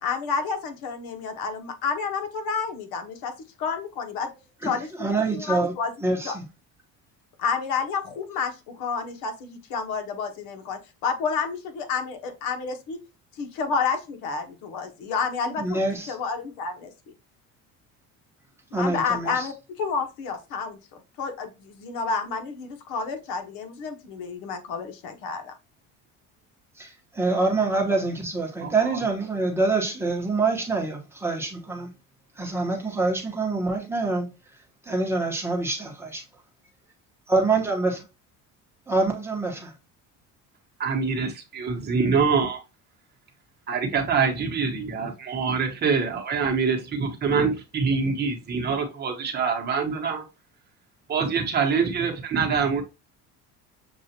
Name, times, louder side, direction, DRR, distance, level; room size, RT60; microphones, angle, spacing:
voice 1, 0.0-3.3 3.6-4.3 4.6-5.9 6.2-6.3 7.4-13.0 13.3-15.8 16.1-16.9 18.7-20.8 21.2-25.5, left 5 dB, 90° left, 1.2 m, -30 dB
voice 2, 5.0-5.7 6.0-6.4 15.6-16.1 18.7-19.4 26.8-31.9 32.4-34.3 34.9-36.2 37.3-38.0 38.9-39.7, right 3 dB, 5° right, 1.0 m, -25 dB
voice 3, 28.6-29.0 40.8-42.6 43.7-50.2 51.1-52.8, right 5 dB, 30° right, 1.0 m, -25 dB
6.9 x 2.4 x 2.8 m
cardioid pair, 160°, 33 cm